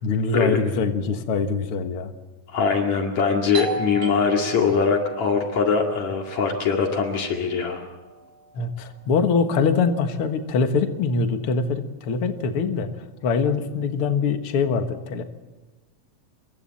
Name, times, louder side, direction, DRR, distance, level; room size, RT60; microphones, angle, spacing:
voice 1, 0.0-2.1 8.5-12.9 13.2-15.2, left 5 dB, 55° left, 7 dB, 2.2 m, -23 dB
voice 2, 2.5-7.8, left 5 dB, 70° left, 2 dB, 3.5 m, -22 dB
Doorbell, 3.5-8.9, right 3 dB, 85° right, 4.2 m, -36 dB
27.5 x 23.0 x 4.2 m, 1.3 s
omnidirectional pair, 3.3 m